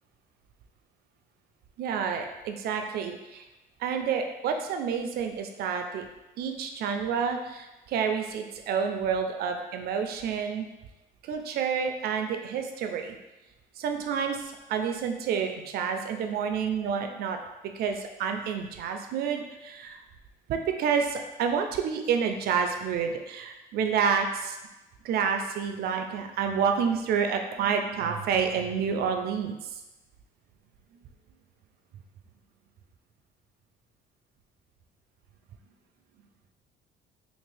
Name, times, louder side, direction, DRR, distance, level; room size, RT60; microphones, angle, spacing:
voice 1, 1.8-3.4 3.8-6.0 6.4-10.7 11.2-13.2 13.8-17.4 17.7-20.0 20.5-24.6 25.0-29.6, right 6 dB, 65° right, 5 dB, 0.5 m, -29 dB
3.5 x 2.4 x 3.3 m, 1.0 s
cardioid pair, 110°, 17 cm